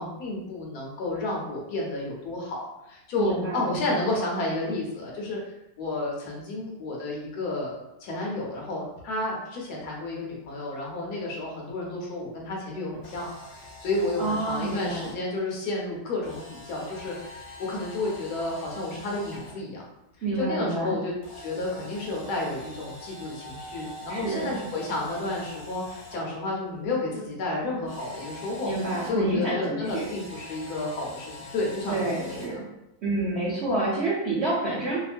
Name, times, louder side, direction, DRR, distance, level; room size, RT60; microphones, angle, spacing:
voice 1, 0.0-5.4 5.8-7.7 8.0-19.8 20.3-28.7 29.0-32.5, left 2 dB, 65° left, -2 dB, 1.2 m, -31 dB
voice 2, 3.2-3.9 14.2-15.1 20.2-21.0 24.1-24.5 28.6-30.1 31.9-32.6 33.0-35.0, right 2 dB, 65° right, -9 dB, 0.7 m, -28 dB
Camera, 12.9-15.1 16.2-19.5 21.2-26.2 27.8-29.1 29.8-32.5, equal, 40° left, 0.8 m, -44 dB
2.9 x 2.4 x 2.4 m, 0.91 s
omnidirectional pair, 1.9 m